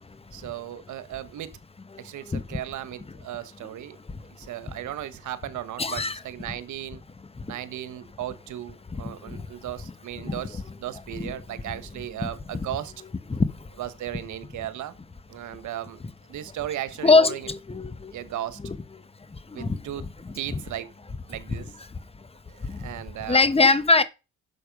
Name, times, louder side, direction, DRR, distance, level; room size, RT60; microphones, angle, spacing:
voice 1, 0.3-1.6 2.0-4.0 4.2-7.0 7.5-12.9 13.8-14.9 15.3-16.0 16.3-17.5 18.1-18.6 19.5-20.1 20.3-20.9 21.3-21.7 22.5-23.4, right 12 dB, 75° right, 1.4 m, -36 dB
voice 2, 2.3-2.6 5.8-6.2 9.0-9.4 10.2-10.4 13.3-13.5 17.0-18.1 18.6-18.8 19.5-19.8 22.7-22.9 23.3-24.0, left 3 dB, 20° left, 1.2 m, -21 dB
11.0 x 6.9 x 5.3 m
cardioid pair, 90°, 30 cm